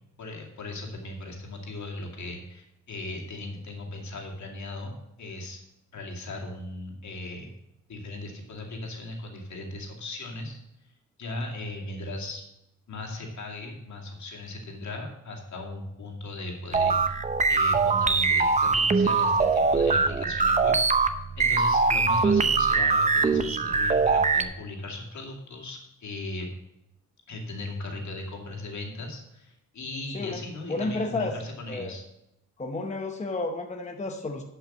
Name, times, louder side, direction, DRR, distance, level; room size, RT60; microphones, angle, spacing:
voice 1, 0.2-5.6 5.9-7.5 7.9-10.6 11.2-12.4 12.9-20.8 21.1-26.5 27.3-32.0, left 2 dB, 65° left, 0 dB, 2.5 m, -37 dB
sound 1, 16.7-24.4, right 4 dB, 25° right, 0.6 m, -22 dB
voice 2, 30.7-31.4 31.7-31.9 32.6-34.4, left 2 dB, 25° left, 4 dB, 0.8 m, -31 dB
11.0 x 5.7 x 6.2 m, 0.86 s
cardioid pair, 105°, 31 cm